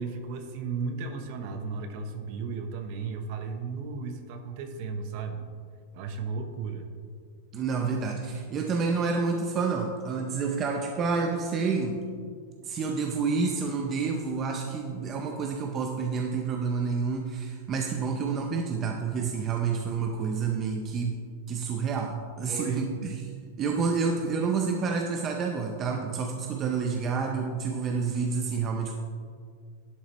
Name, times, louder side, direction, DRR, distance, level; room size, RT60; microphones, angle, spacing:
voice 1, 0.0-5.5 5.9-6.9 22.5-22.9, right 4 dB, 45° right, 7 dB, 0.8 m, -35 dB
voice 2, 7.5-12.0 12.6-21.2 21.5-23.2 23.6-28.9, right 5 dB, 20° right, 2 dB, 0.5 m, -29 dB
11.0 x 8.4 x 3.0 m, 2.1 s
supercardioid pair, 170°, 0 cm